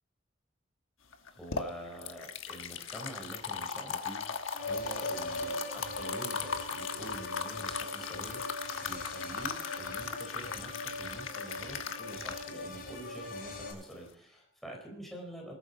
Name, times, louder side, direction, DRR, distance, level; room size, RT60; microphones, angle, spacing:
sound 1, 1.1-14.1, left 6 dB, 90° left, 1.3 m, -39 dB
voice 1, 1.3-15.5, right 1 dB, ahead, 0 dB, 4.0 m, -46 dB
sound 2, 4.5-13.7, left 1 dB, 45° left, 6.2 m, -40 dB
19.0 x 13.5 x 4.1 m, 0.75 s
head